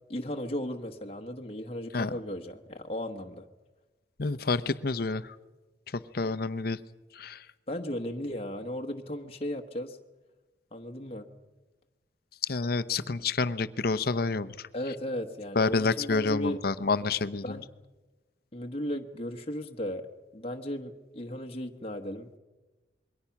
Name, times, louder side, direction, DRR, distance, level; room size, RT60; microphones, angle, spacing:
voice 1, 0.1-3.4 7.7-10.0 10.7-11.3 14.7-16.6 17.4-17.7 18.5-20.1 20.3-22.4, left 1 dB, 35° left, 3 dB, 1.2 m, -36 dB
voice 2, 4.2-5.4 5.9-6.8 7.1-7.5 12.4-14.7 15.6-17.6, left 4 dB, 55° left, 14 dB, 0.8 m, -29 dB
27.0 x 22.5 x 5.9 m, 1.2 s
head